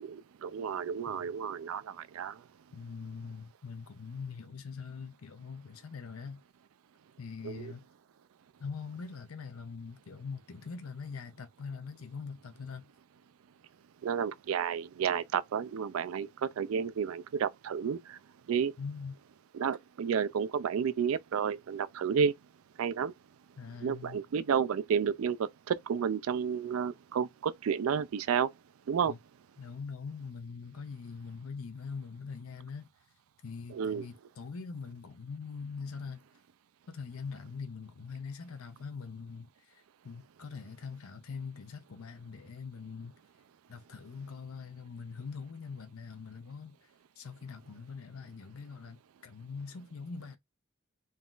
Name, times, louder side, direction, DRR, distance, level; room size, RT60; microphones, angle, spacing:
voice 1, 0.0-2.3 7.4-7.7 14.0-18.2 18.5-18.7 19.5-22.3 22.8-23.1 23.8-28.5 28.9-29.1 33.7-34.1, right 7 dB, 80° right, 0.4 m, -31 dB
voice 2, 2.7-6.4 7.2-7.8 8.6-12.9 18.8-19.2 23.6-24.2 29.0-29.2 29.6-32.9 33.4-36.2 36.9-43.2 43.7-50.4, left 5 dB, 90° left, 0.6 m, -43 dB
3.8 x 2.4 x 3.8 m
head